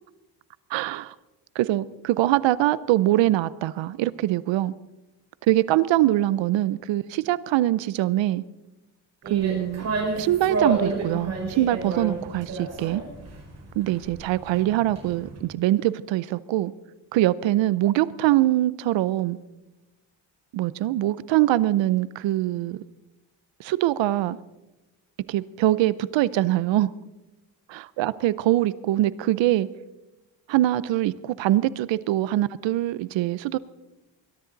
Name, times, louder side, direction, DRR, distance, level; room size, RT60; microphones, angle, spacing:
voice 1, 0.7-1.1 1.6-4.7 5.5-8.4 9.3-9.9 10.2-13.0 13.8-16.7 17.1-19.4 20.5-22.8 23.6-24.4 25.3-26.9 27.7-29.7 30.5-33.6, right 15 dB, 75° right, 18 dB, 0.7 m, -23 dB
sound 1, 9.2-15.4, right 3 dB, 35° right, 5.3 m, -30 dB
21.5 x 13.0 x 4.0 m, 1.0 s
cardioid pair, 160°, 46 cm